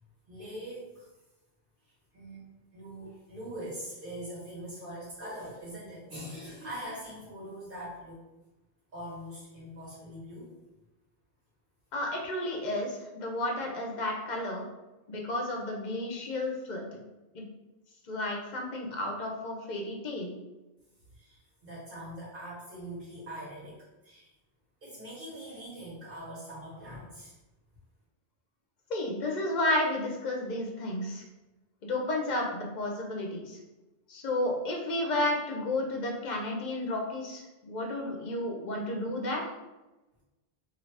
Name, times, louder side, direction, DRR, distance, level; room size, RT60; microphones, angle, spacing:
voice 1, 0.3-1.1 1.8-2.4 2.7-8.2 8.9-10.5 21.1-23.8 24.0-24.3 24.8-27.4, equal, 60° right, -7 dB, 1.7 m, -42 dB
voice 2, 11.9-14.7 15.1-17.0 17.3-17.4 18.1-20.3 28.9-31.2 31.8-33.6 34.1-39.5, left 1 dB, 50° left, 0 dB, 0.8 m, -32 dB
2.8 x 2.8 x 3.2 m, 1.1 s
omnidirectional pair, 1.0 m